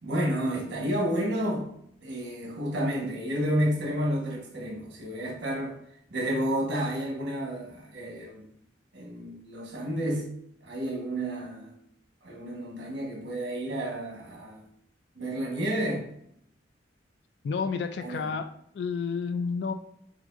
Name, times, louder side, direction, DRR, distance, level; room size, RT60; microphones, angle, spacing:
voice 1, 0.0-1.7 2.0-5.7 6.1-8.5 8.9-10.3 10.6-11.7 12.2-14.6 15.2-16.1 18.0-18.3, equal, 90° right, -1 dB, 1.3 m, -30 dB
voice 2, 17.4-19.7, left 5 dB, 65° left, 9 dB, 0.3 m, -31 dB
6.0 x 2.5 x 2.5 m, 0.70 s
head